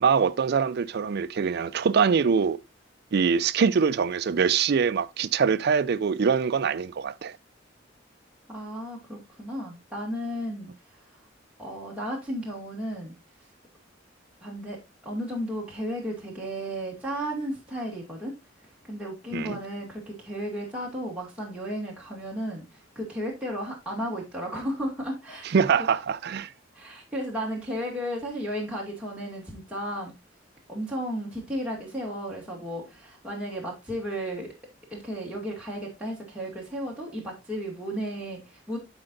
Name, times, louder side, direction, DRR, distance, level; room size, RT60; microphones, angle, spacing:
voice 1, 0.0-2.6 3.1-7.4 19.3-19.6 25.4-26.5, right 6 dB, 60° right, 0.4 m, -23 dB
voice 2, 8.5-10.7 11.6-13.1 14.4-18.3 18.9-25.6 26.7-30.1 30.7-34.5 34.9-38.8, equal, 5° right, 2.2 m, -34 dB
12.5 x 4.4 x 2.6 m
head